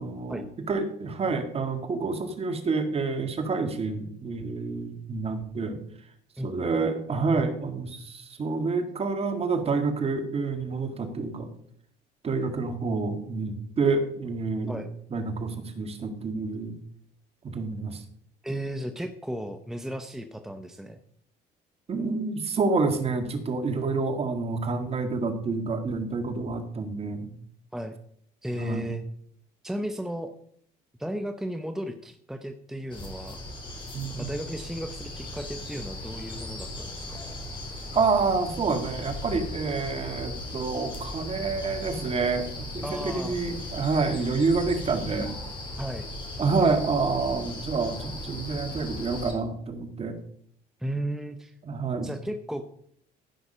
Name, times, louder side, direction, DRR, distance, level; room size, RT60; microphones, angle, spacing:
voice 1, 0.0-5.8 6.4-11.5 12.2-14.8 15.1-16.8 17.4-18.0 21.9-27.3 28.6-28.9 33.9-34.3 37.9-45.4 46.4-50.2 51.7-52.1, right 4 dB, 35° right, 7 dB, 1.9 m, -28 dB
voice 2, 18.4-21.0 27.7-27.9 28.4-29.0 29.6-30.3 31.0-33.4 34.2-37.2 42.8-43.4 45.8-46.1 50.8-51.5 52.0-52.7, right 1 dB, 5° right, 7 dB, 0.8 m, -34 dB
sound 1, 32.9-49.3, left 1 dB, 30° left, 3.7 m, -37 dB
15.0 x 5.9 x 5.6 m, 0.66 s
cardioid pair, 110°, 17 cm